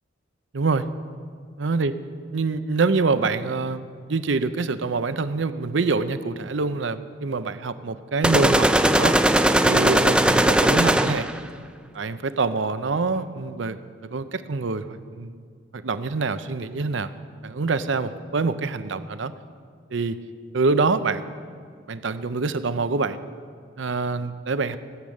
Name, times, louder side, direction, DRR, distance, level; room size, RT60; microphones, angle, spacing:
voice 1, 0.5-0.9 1.6-1.9 2.3-3.8 4.1-9.2 9.6-11.3 11.9-13.8 14.1-15.4 15.7-17.1 17.4-19.3 19.9-20.2 20.5-21.3 21.9-23.2 23.8-24.8, right 4 dB, 70° right, 12 dB, 0.6 m, -25 dB
sound 1, 8.2-11.4, right 1 dB, 5° right, 0.3 m, -18 dB
17.0 x 8.7 x 6.5 m, 2.1 s
head